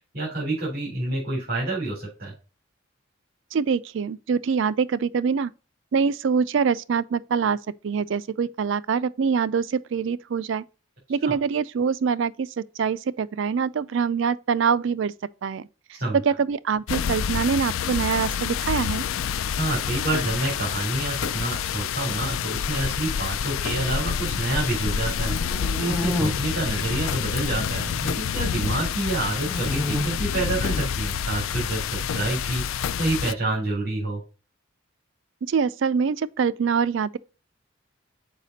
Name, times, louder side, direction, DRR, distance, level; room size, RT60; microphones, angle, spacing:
voice 1, 0.1-2.3 11.2-11.3 16.0-16.2 19.6-34.2, right 2 dB, 45° right, 3.8 m, -28 dB
voice 2, 3.5-5.5 5.9-7.6 7.8-10.6 11.1-15.1 15.4-15.6 16.3-19.0 35.4-37.2, right 6 dB, 65° right, 0.4 m, -24 dB
sound 1, 16.9-33.3, left 7 dB, 80° left, 0.4 m, -28 dB
sound 2, 25.1-26.3 27.0-27.6 27.8-28.8 29.4-30.0 30.6-30.8 32.0-32.9, left 1 dB, 5° right, 1.2 m, -30 dB
6.7 x 4.9 x 4.0 m
head